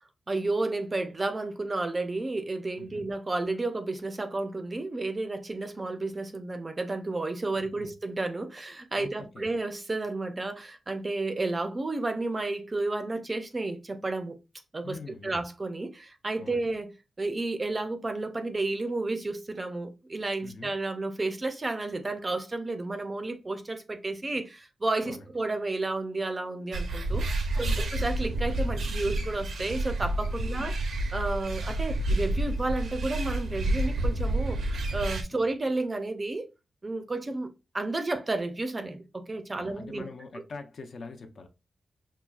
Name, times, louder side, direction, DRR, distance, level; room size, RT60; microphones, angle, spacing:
voice 1, 0.3-14.4 14.7-15.0 15.2-16.9 17.2-27.3 27.6-27.7 27.9-30.7 31.1-34.6 34.9-36.5 36.8-40.0, right 2 dB, 25° right, 0.4 m, -31 dB
voice 2, 7.5-7.9 9.0-9.5 14.8-15.4 16.4-16.7 20.4-20.7 25.1-25.3 27.5-28.0 30.4-30.8 35.3-35.5 39.6-41.5, left 4 dB, 55° left, 0.5 m, -44 dB
sound 1, 26.7-35.2, right 1 dB, 80° right, 0.7 m, -29 dB
5.6 x 2.3 x 2.3 m
wide cardioid pair, 170°, 0 cm